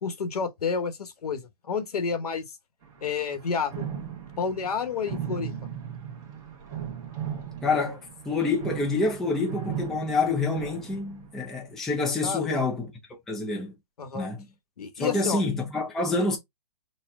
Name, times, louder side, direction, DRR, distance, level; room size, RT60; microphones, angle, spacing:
voice 1, 0.0-2.5 3.0-3.9 4.4-5.6 12.2-12.5 14.0-14.3 14.8-15.4, left 5 dB, 85° left, 1.1 m, -30 dB
sound 1, 2.8-3.0 3.3-11.5, right 9 dB, 15° right, 0.9 m, -37 dB
voice 2, 7.6-12.9 13.3-13.7 14.1-14.5 15.0-16.4, left 3 dB, ahead, 0.3 m, -27 dB
4.2 x 2.1 x 3.5 m
hypercardioid pair, 160°, 19 cm